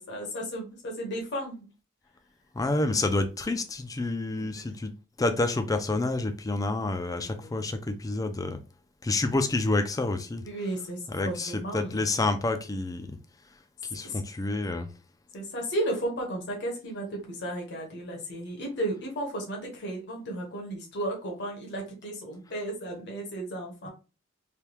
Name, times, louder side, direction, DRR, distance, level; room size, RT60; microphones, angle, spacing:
voice 1, 0.0-1.7 7.2-7.7 10.4-12.0 14.0-14.2 15.3-23.9, right 1 dB, 60° left, 1.0 m, -34 dB
voice 2, 2.5-4.9 5.2-8.6 9.0-10.4 11.1-13.2 13.9-14.9, left 2 dB, 20° left, 0.4 m, -28 dB
3.3 x 2.2 x 2.8 m
head